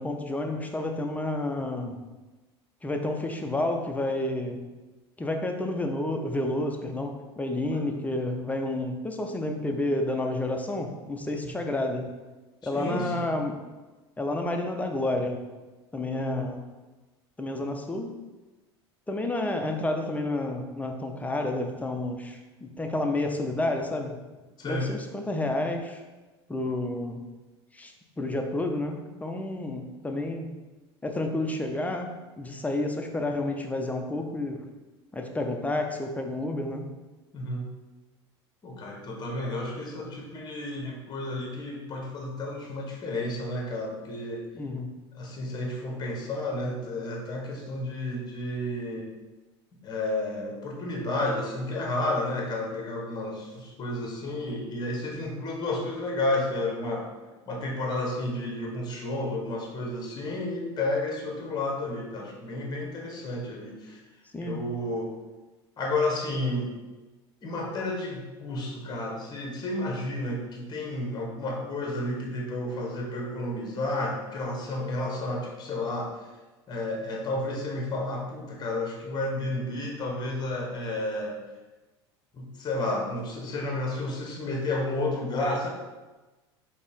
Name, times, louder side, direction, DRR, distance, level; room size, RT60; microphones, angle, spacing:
voice 1, 0.0-2.0 2.8-4.7 5.2-12.1 12.6-13.6 14.2-15.4 15.9-16.6 17.4-18.1 19.1-24.2 24.6-26.0 26.5-27.2 27.7-30.5 31.0-34.6 35.1-36.9 44.5-44.9 64.3-64.6, left 2 dB, 10° left, 4 dB, 0.5 m, -30 dB
voice 2, 12.7-13.3 16.1-16.5 24.6-24.9 37.3-37.7 38.6-44.4 45.1-49.1 49.8-57.1 57.5-64.0 64.4-65.1 65.8-66.7 67.4-76.1 76.7-81.4 82.3-85.7, left 2 dB, 30° left, 0 dB, 1.0 m, -31 dB
4.1 x 2.9 x 3.5 m, 1.2 s
hypercardioid pair, 85°, 14 cm